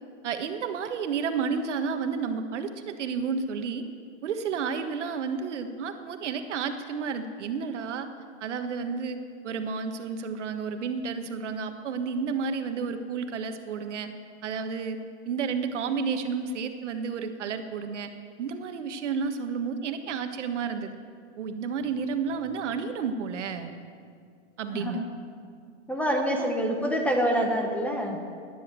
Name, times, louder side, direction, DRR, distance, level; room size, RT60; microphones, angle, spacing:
voice 1, 0.2-3.8 4.2-8.1 8.4-9.2 9.4-14.1 14.4-15.0 15.2-18.1 18.4-20.9 21.4-23.7 24.6-25.0 26.4-26.5, right 5 dB, 75° right, 7 dB, 1.6 m, -31 dB
voice 2, 24.7-25.1 25.9-28.2, equal, 5° left, 2 dB, 1.2 m, -26 dB
16.5 x 10.5 x 7.6 m, 2.2 s
hypercardioid pair, 150°, 36 cm